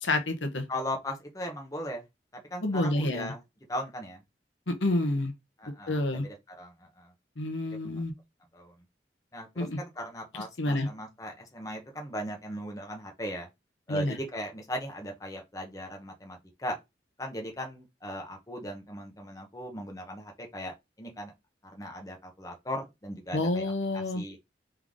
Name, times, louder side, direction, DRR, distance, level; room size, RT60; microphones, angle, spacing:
voice 1, 0.0-0.6 2.6-3.3 4.7-5.3 5.9-6.2 7.4-8.1 9.6-9.8 10.6-10.9 13.9-14.2 23.3-24.2, left 2 dB, 85° left, 1.1 m, -28 dB
voice 2, 0.7-2.0 2.3-3.4 3.7-4.2 5.6-7.1 8.5-8.7 9.3-13.5 13.9-16.8 17.2-21.3 21.7-24.4, equal, 20° left, 1.0 m, -38 dB
3.7 x 3.3 x 3.7 m
head